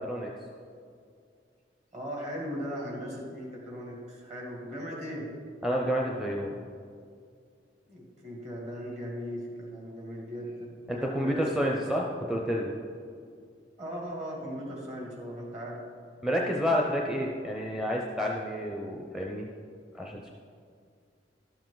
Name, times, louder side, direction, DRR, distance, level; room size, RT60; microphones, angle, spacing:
voice 1, 1.9-5.2 7.9-10.7 10.9-11.5 13.8-15.8, equal, 40° right, -2 dB, 2.2 m, -38 dB
voice 2, 5.6-6.6 10.9-12.7 16.2-19.5 19.9-20.3, equal, 5° right, -1 dB, 0.6 m, -29 dB
12.5 x 7.1 x 3.9 m, 2.3 s
head